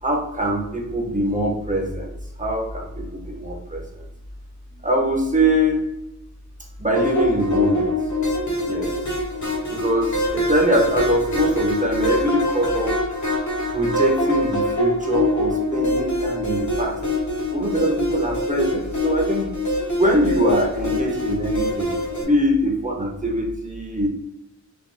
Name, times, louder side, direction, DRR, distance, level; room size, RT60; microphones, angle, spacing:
voice 1, 0.0-4.0 4.8-5.9 6.8-7.9 8.6-8.9 9.7-13.0 13.7-17.0 17.5-19.5 20.0-24.1, right 1 dB, 25° right, 0 dB, 1.0 m, -23 dB
sound 1, 6.9-22.2, left 1 dB, 65° left, 1.4 m, -24 dB
4.1 x 2.7 x 3.5 m, 0.86 s
wide cardioid pair, 95°, 32 cm